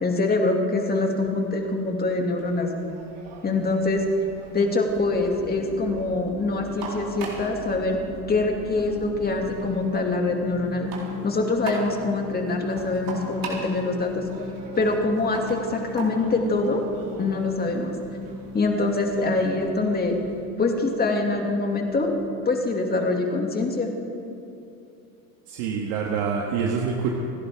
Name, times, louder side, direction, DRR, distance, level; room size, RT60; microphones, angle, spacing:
voice 1, 0.0-2.7 3.4-4.0 4.5-8.0 8.3-10.9 11.2-14.3 14.8-16.8 17.2-18.0 18.5-20.2 20.6-22.1 22.5-23.9, left 2 dB, 20° left, 2 dB, 2.5 m, -24 dB
sound 1, 1.2-20.5, right 3 dB, 50° right, 4.0 m, -42 dB
sound 2, 4.9-22.6, left 5 dB, 60° left, 1.7 m, -39 dB
voice 2, 25.5-27.1, right 6 dB, 70° right, 0 dB, 1.7 m, -26 dB
28.0 x 11.5 x 3.7 m, 2.7 s
supercardioid pair, 105°, 43 cm